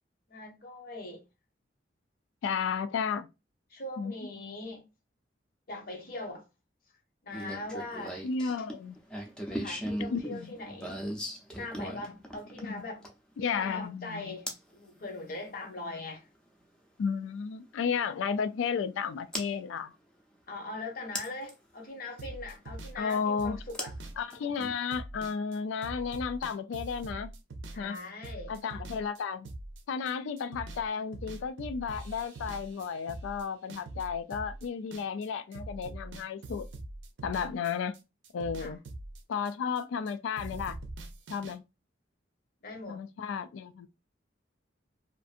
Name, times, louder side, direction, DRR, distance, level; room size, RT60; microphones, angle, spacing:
voice 1, 0.3-1.2 3.7-4.8 5.7-6.5 7.2-8.3 9.5-11.1 11.5-13.0 13.6-16.3 20.5-23.9 27.7-28.5 38.6-38.7 42.6-43.0, left 2 dB, 50° left, 0.8 m, -41 dB
voice 2, 2.4-3.3 4.0-4.1 8.2-9.0 10.1-10.5 12.6-12.7 13.4-14.4 17.0-19.9 23.0-23.6 24.2-27.3 27.8-28.0 28.5-29.5 29.9-36.7 37.2-37.9 38.3-38.8 39.3-40.8 41.3-41.6 42.9-43.9, left 6 dB, 85° left, 0.3 m, -33 dB
sound 1, 7.3-13.3 14.5-14.7 16.6-16.7 19.3-19.5 21.2-21.5 23.7-24.7, equal, 5° left, 0.5 m, -38 dB
sound 2, 22.2-30.1 30.4-30.9 31.1-35.3 35.5-38.0 38.2-40.1 40.4-41.5, right 2 dB, 75° right, 0.5 m, -43 dB
2.5 x 2.5 x 2.4 m
head